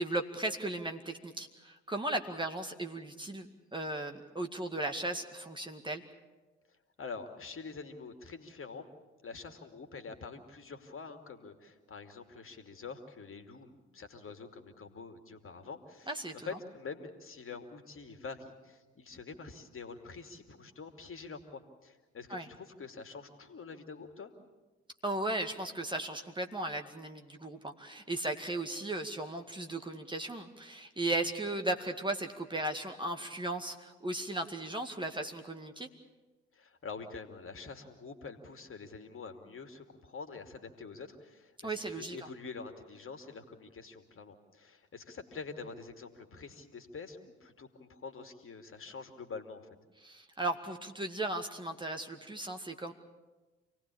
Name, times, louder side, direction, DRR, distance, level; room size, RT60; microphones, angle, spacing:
voice 1, 0.0-3.5 3.7-6.0 16.1-16.5 22.3-22.5 25.0-35.9 41.6-42.2 50.0-52.9, right 2 dB, 15° right, 5 dB, 2.1 m, -36 dB
voice 2, 7.0-8.9 9.2-16.2 16.4-24.3 36.5-49.7, left 4 dB, 40° left, 6 dB, 2.8 m, -46 dB
27.5 x 19.0 x 8.6 m, 1.2 s
figure-of-eight pair, 45°, 33 cm